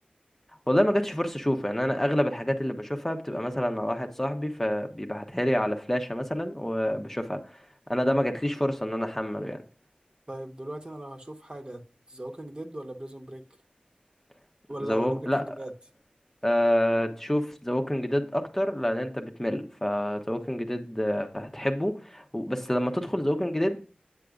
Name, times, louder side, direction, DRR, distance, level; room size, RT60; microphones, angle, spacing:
voice 1, 0.7-7.4 7.9-9.6 14.8-15.5 16.4-23.9, equal, 10° left, 1.0 m, -27 dB
voice 2, 10.3-11.8 12.1-13.4 14.7-15.7 22.4-22.6, right 1 dB, 30° right, 1.3 m, -39 dB
9.2 x 6.5 x 2.5 m
wide cardioid pair, 45°, 3 cm